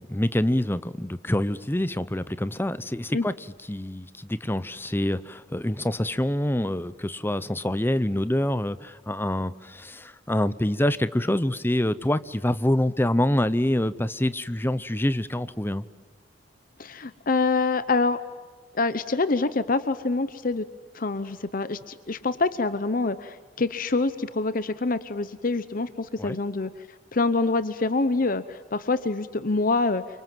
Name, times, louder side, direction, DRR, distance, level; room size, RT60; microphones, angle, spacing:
voice 1, 0.0-3.3 3.7-15.8 26.2-26.4, left 1 dB, 10° left, 15 dB, 0.8 m, -26 dB
voice 2, 16.8-18.2 18.7-20.7 20.9-26.7 27.1-30.0, left 3 dB, 50° left, 13 dB, 0.9 m, -26 dB
29.0 x 25.0 x 7.6 m, 1.5 s
head